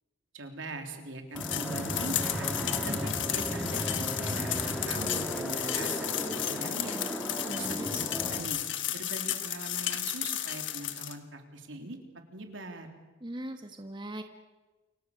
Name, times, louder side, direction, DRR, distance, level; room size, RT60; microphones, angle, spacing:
voice 1, 0.3-2.5 2.8-7.0 7.6-8.6 8.9-12.0 12.3-12.9, right 2 dB, 80° right, 4 dB, 3.5 m, -42 dB
Fixed-wing aircraft airplane, 1.3-8.4, equal, ahead, 4.0 m, -35 dB
sound 1, 1.4-11.1, left 12 dB, 70° left, 1.6 m, -33 dB
voice 2, 7.4-8.1 13.2-14.2, right 1 dB, 25° right, 6 dB, 1.5 m, -39 dB
28.5 x 24.5 x 6.7 m, 1.2 s
head